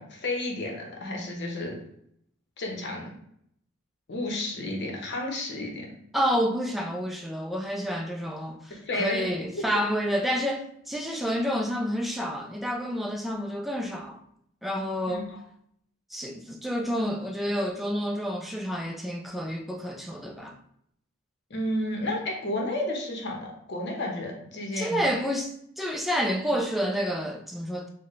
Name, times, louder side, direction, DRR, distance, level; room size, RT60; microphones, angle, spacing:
voice 1, 0.0-1.8 2.6-3.1 4.1-5.9 8.7-9.7 15.1-15.4 21.5-25.0, left 1 dB, 55° left, 0.9 m, -32 dB
voice 2, 6.1-14.2 14.6-15.3 16.1-20.6 24.7-27.9, equal, ahead, 0.4 m, -29 dB
4.1 x 2.2 x 3.1 m
head